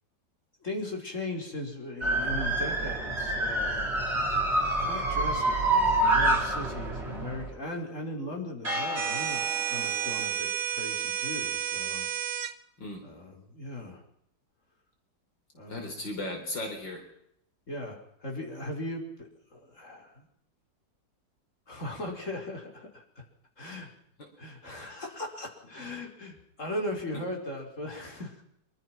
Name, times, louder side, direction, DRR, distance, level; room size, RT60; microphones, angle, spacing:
voice 1, 0.6-3.9 4.8-12.1 13.0-14.0 15.5-16.0 17.7-20.3 21.7-23.2 23.6-23.9 24.4-28.4, left 1 dB, 40° left, 1 dB, 5.5 m, -38 dB
sound 1, 2.0-7.5 8.6-10.3, right 2 dB, 35° right, 5.5 m, -28 dB
sound 2, 9.0-12.5, right 10 dB, 65° right, 1.8 m, -31 dB
voice 2, 15.7-17.0 24.2-24.3 27.1-27.2, left 2 dB, 80° left, 3 dB, 4.7 m, -36 dB
26.0 x 24.5 x 6.1 m, 0.72 s
omnidirectional pair, 2.0 m